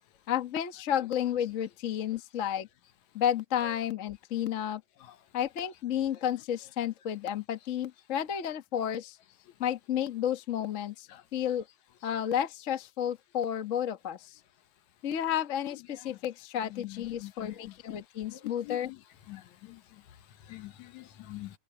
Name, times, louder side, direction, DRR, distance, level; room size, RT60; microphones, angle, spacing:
voice 1, 0.3-2.7 3.1-4.8 5.3-9.2 9.6-11.6 12.0-14.4 15.0-18.9, left 10 dB, 90° left, 0.6 m, -32 dB
voice 2, 16.7-17.7 18.3-18.8 19.3-19.4 20.5-21.5, left 16 dB, 65° left, 2.3 m, -44 dB
omnidirectional pair, 3.7 m